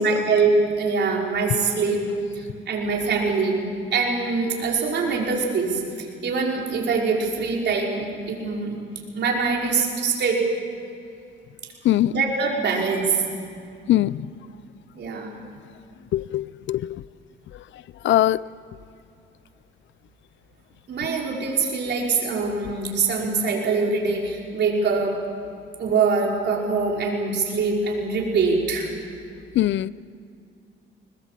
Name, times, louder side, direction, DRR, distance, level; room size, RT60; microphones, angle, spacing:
voice 1, 0.0-2.1 2.3-3.7 3.9-8.8 9.1-10.4 12.1-13.2 14.9-15.3 20.9-25.2 25.8-28.9, right 4 dB, 60° right, -2 dB, 5.2 m, -23 dB
voice 2, 13.9-14.3 16.1-16.9 18.0-18.4 29.6-29.9, left 13 dB, 70° left, 20 dB, 0.6 m, -21 dB
21.5 x 21.0 x 7.6 m, 2.5 s
cardioid pair, 90°, 20 cm